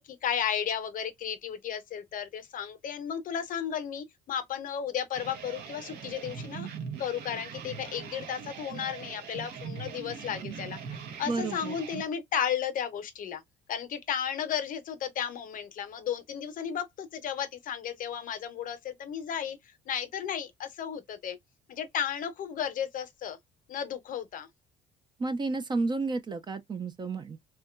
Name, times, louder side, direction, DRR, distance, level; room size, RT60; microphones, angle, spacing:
voice 1, 0.0-6.7 7.0-13.4 13.7-21.4 21.7-23.4 23.7-24.5, left 8 dB, 55° left, 0.6 m, -34 dB
sound 1, 5.1-12.0, right 6 dB, 75° right, 0.8 m, -41 dB
voice 2, 11.3-11.7 25.2-27.4, right 3 dB, 25° right, 0.4 m, -31 dB
2.8 x 2.2 x 2.2 m
cardioid pair, 110°, 17 cm